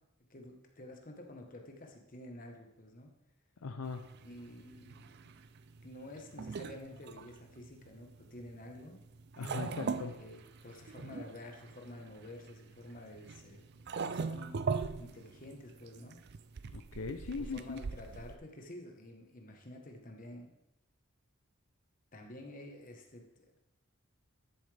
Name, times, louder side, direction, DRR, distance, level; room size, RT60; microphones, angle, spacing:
voice 1, 0.3-3.1 4.2-5.3 5.8-9.0 10.2-16.2 17.4-20.5 22.1-23.5, left 1 dB, 40° left, 3 dB, 1.2 m, -50 dB
voice 2, 3.6-4.1 9.4-10.2 16.7-17.8, left 4 dB, 75° left, 7 dB, 0.6 m, -40 dB
sound 1, 3.8-18.4, right 5 dB, 50° right, 0.4 m, -42 dB
12.5 x 7.2 x 3.4 m, 0.88 s
head